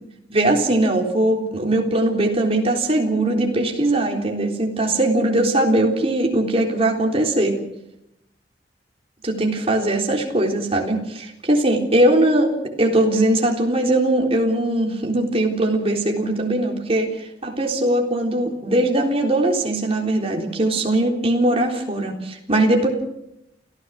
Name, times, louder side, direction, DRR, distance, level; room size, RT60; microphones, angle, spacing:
voice 1, 0.3-7.6 9.2-12.5 12.8-22.9, right 1 dB, 35° right, 1 dB, 3.8 m, -20 dB
29.0 x 15.0 x 6.5 m, 0.83 s
head